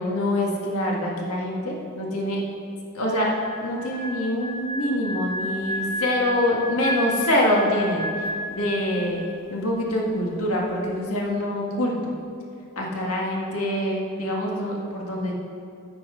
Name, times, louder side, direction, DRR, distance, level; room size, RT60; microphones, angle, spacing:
voice 1, 0.0-2.4 2.9-3.3 3.6-8.1 8.5-9.2 9.5-11.9 12.8-15.3, left 1 dB, 75° left, -2 dB, 1.8 m, -25 dB
sound 1, 3.1-9.5 9.7-10.0, equal, 30° right, 0.4 m, -32 dB
10.0 x 7.9 x 5.0 m, 2.4 s
head